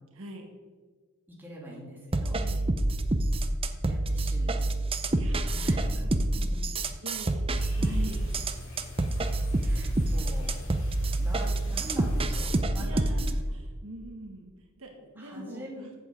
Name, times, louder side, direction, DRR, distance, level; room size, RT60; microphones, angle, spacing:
voice 1, 1.3-2.4 3.8-4.7 5.6-6.1 6.4-6.8 9.6-10.6 11.2-13.0 15.2-15.8, equal, 10° right, -4 dB, 2.9 m, -43 dB
sound 1, 2.1-13.4, right 2 dB, 25° right, 0.6 m, -27 dB
voice 2, 2.3-2.7 5.1-5.8 7.0-8.4 10.7-11.1 12.8-14.5 14.8-15.9, right 1 dB, 65° right, 2 dB, 1.7 m, -44 dB
sound 2, 7.5-12.6, left 1 dB, 65° left, 3.3 m, -44 dB
8.8 x 7.4 x 7.7 m, 1.5 s
head